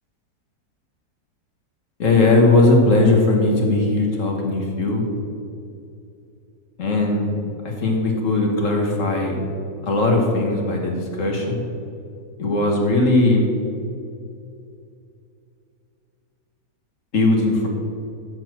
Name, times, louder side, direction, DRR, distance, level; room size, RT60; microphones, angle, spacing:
voice 1, 2.0-5.0 6.8-7.4 7.6-9.4 9.8-11.6 12.4-13.5 17.1-17.7, left 2 dB, 50° left, 1 dB, 1.5 m, -18 dB
12.5 x 4.3 x 6.2 m, 2.5 s
omnidirectional pair, 1.9 m